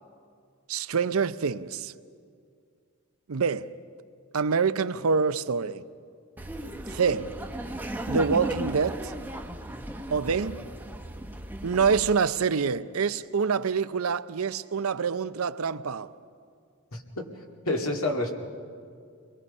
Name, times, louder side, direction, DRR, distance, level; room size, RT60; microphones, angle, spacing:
voice 1, 0.7-1.9 3.3-3.7 4.3-5.8 6.9-7.3 8.1-9.1 10.1-10.6 11.6-16.1, right 5 dB, 80° right, 0.6 m, -26 dB
Laughter, 6.4-12.2, right 1 dB, 10° right, 0.9 m, -35 dB
voice 2, 16.9-17.3 17.7-18.3, left 2 dB, 75° left, 2.4 m, -28 dB
29.5 x 22.0 x 5.5 m
head